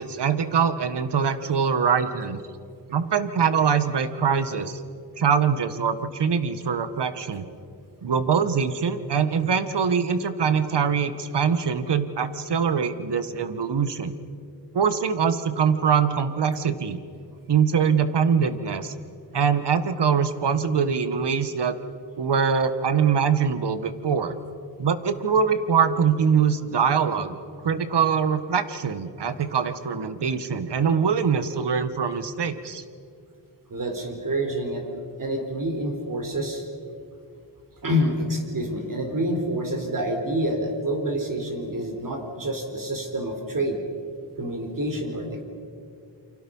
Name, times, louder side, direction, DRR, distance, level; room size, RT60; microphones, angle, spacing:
voice 1, 0.0-2.4 2.9-4.8 5.2-7.5 8.0-14.1 14.7-17.0 17.5-18.9 19.3-21.8 22.2-24.4 24.8-27.4 27.6-32.8, right 6 dB, 65° right, 11 dB, 1.7 m, -23 dB
voice 2, 33.7-34.9 35.2-36.6 37.8-43.8 44.4-45.4, equal, 45° right, 4 dB, 4.5 m, -27 dB
29.0 x 24.5 x 5.6 m, 2.4 s
cardioid pair, 80°, 43 cm